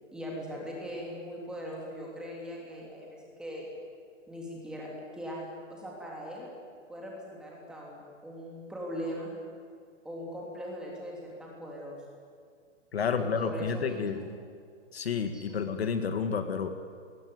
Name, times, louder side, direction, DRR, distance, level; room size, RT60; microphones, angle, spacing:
voice 1, 0.1-3.7 4.3-6.5 6.9-9.3 10.0-12.0 13.0-14.3 15.3-15.8, equal, ahead, -3 dB, 3.1 m, -40 dB
voice 2, 12.9-14.3 14.9-16.7, left 6 dB, 50° left, 8 dB, 1.9 m, -30 dB
26.5 x 21.5 x 9.6 m, 2.1 s
hypercardioid pair, 175°, 38 cm